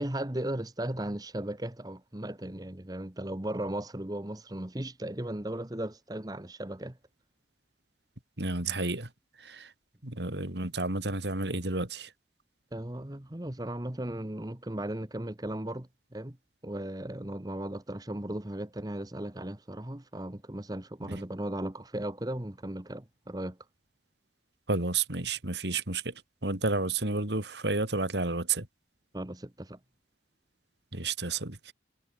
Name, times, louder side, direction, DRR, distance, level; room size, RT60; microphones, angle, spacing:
voice 1, 0.0-7.0 12.7-16.4 16.6-23.6 29.1-29.8, right 1 dB, 20° right, 1.2 m, -36 dB
voice 2, 8.4-9.1 9.4-9.7 10.0-12.1 21.1-21.2 24.7-26.1 26.4-28.7 30.9-31.6, right 3 dB, 75° right, 3.4 m, -31 dB
head